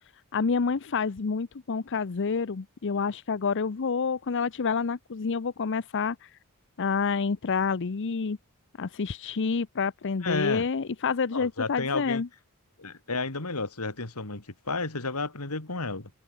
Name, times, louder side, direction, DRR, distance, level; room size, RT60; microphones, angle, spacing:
voice 1, 0.3-6.4 6.8-8.4 8.8-12.3, left 5 dB, 55° left, 0.6 m, -28 dB
voice 2, 10.2-10.7 11.3-12.2 12.8-16.1, left 3 dB, 80° left, 2.9 m, -32 dB
head